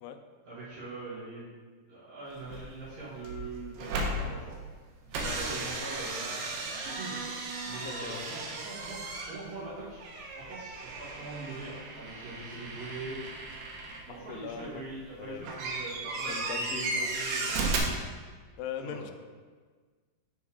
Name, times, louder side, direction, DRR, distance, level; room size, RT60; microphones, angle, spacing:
voice 1, 0.4-1.5 1.9-4.6 5.0-7.1 7.6-9.0 9.3-10.0 10.4-13.2 14.1-17.8 18.8-19.1, right 3 dB, 65° right, -12 dB, 3.9 m, -42 dB
sound 1, 2.3-2.9 3.2-4.8 5.1-14.1 14.5-17.8, right 3 dB, 85° right, 2.9 m, -35 dB
voice 2, 5.2-6.1 7.8-8.3 14.1-14.8 15.2-15.5 16.3-17.1 18.6-19.1, left 8 dB, 80° left, 6 dB, 2.0 m, -41 dB
9.6 x 3.6 x 4.7 m, 1.5 s
omnidirectional pair, 4.4 m